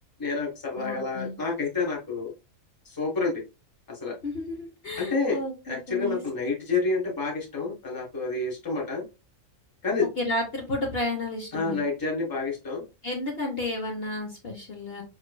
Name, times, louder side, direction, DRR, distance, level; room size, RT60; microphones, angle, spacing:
voice 1, 0.2-2.3 2.8-3.4 3.9-4.2 5.0-5.4 5.6-9.1 9.8-10.1 11.5-12.8, left 3 dB, 15° left, -2 dB, 1.2 m, -29 dB
voice 2, 0.8-1.3 4.2-6.2 10.2-11.8 13.0-15.0, left 2 dB, 50° left, -1 dB, 1.1 m, -32 dB
5.5 x 3.2 x 2.2 m, 0.29 s
omnidirectional pair, 1.5 m